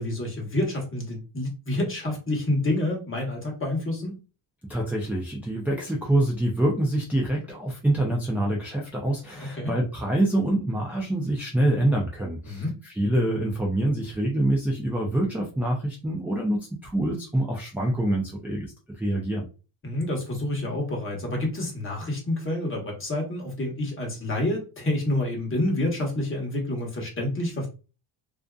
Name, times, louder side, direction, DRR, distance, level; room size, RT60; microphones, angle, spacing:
voice 1, 0.0-4.2 9.4-9.7 12.5-12.7 19.8-27.7, left 1 dB, 25° left, 0 dB, 1.0 m, -28 dB
voice 2, 4.7-18.7 19.0-19.4, right 1 dB, 5° right, -2 dB, 0.4 m, -25 dB
2.5 x 2.4 x 2.3 m, 0.32 s
cardioid pair, 120°, 48 cm